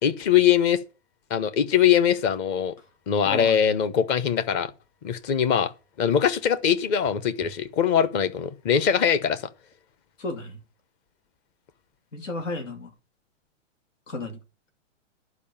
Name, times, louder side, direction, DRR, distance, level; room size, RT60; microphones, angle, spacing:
voice 1, 0.0-0.8 1.3-2.7 3.1-4.7 5.0-5.7 6.0-9.4, left 8 dB, 25° left, 1.0 m, -22 dB
voice 2, 3.2-3.6 10.2-10.6 12.1-12.9 14.1-14.4, left 2 dB, 90° left, 3.0 m, -33 dB
11.0 x 5.1 x 7.2 m
hypercardioid pair, 135°, 37 cm